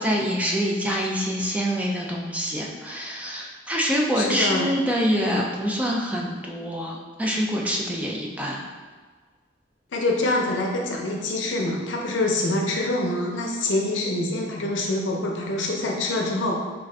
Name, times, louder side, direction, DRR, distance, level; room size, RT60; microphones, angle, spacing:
voice 1, 0.0-8.6, equal, 10° right, -1 dB, 0.3 m, -25 dB
voice 2, 4.2-4.7 9.9-16.6, left 2 dB, 80° left, 0 dB, 0.6 m, -25 dB
3.7 x 2.5 x 3.2 m, 1.5 s
head